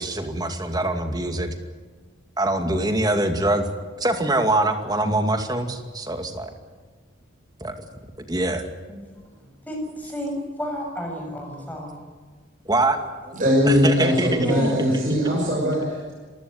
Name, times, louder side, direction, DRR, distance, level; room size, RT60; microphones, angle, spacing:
voice 1, 0.0-1.5 2.4-3.7 4.0-6.5 7.6-7.7 8.2-8.7 10.3-10.4 12.7-13.4 13.6-15.3, right 2 dB, 20° right, 6 dB, 2.3 m, -24 dB
voice 2, 9.4-12.0 14.4-14.9, equal, 10° left, 1 dB, 7.1 m, -31 dB
voice 3, 13.3-16.1, equal, 40° right, -3 dB, 6.3 m, -21 dB
27.0 x 16.0 x 9.4 m, 1.4 s
head